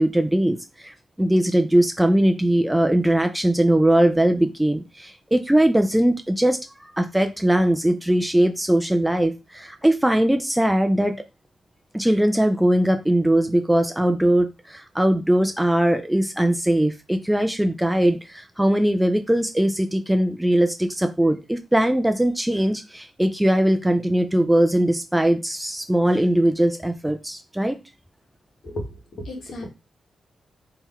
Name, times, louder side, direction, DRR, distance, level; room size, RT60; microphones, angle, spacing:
voice 1, 0.0-11.1 11.9-27.8, right 1 dB, 5° right, 6 dB, 0.3 m, -20 dB
voice 2, 29.1-29.6, left 1 dB, 55° left, 1 dB, 1.3 m, -33 dB
3.7 x 2.9 x 4.2 m, 0.26 s
wide cardioid pair, 170°, 0 cm